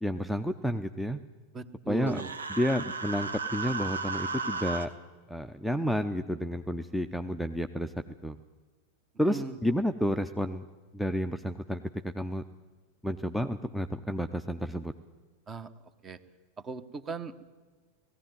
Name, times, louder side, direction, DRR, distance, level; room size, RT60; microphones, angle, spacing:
voice 1, 0.0-1.2 1.9-2.2 2.5-4.9 5.3-7.9 8.2-8.4 9.2-10.6 10.9-12.4 13.0-14.9, equal, ahead, 7 dB, 0.7 m, -30 dB
voice 2, 1.5-2.3 9.3-9.6 15.5-15.7 16.0-16.2 16.6-17.4, right 4 dB, 20° right, 13 dB, 1.2 m, -38 dB
Human voice, 2.1-4.9, right 4 dB, 75° right, 1.2 m, -34 dB
18.0 x 15.5 x 9.4 m, 1.3 s
figure-of-eight pair, 90°, 0 cm